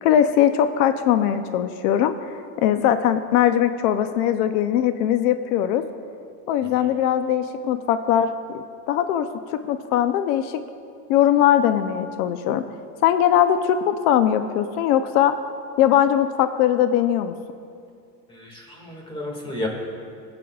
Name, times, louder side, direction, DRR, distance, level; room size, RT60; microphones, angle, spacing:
voice 1, 0.0-5.8 6.5-8.3 8.5-10.6 11.1-12.7 13.0-15.4 15.8-17.3, left 10 dB, 80° left, 10 dB, 0.7 m, -20 dB
voice 2, 18.3-19.7, left 1 dB, 10° left, 0 dB, 2.0 m, -32 dB
22.5 x 8.6 x 2.4 m, 2.3 s
cardioid pair, 150°, 45 cm